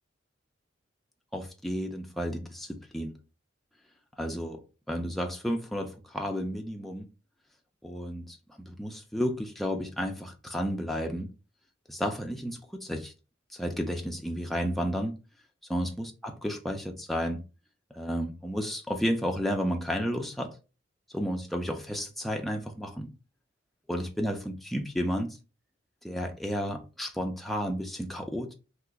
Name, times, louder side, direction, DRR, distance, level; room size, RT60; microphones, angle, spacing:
voice 1, 1.3-3.2 4.2-7.1 7.8-11.3 11.9-13.1 13.5-15.2 15.7-17.4 17.9-20.6 21.1-23.1 23.9-25.4 26.0-28.5, equal, ahead, 0.4 m, -32 dB
2.9 x 2.4 x 3.4 m
head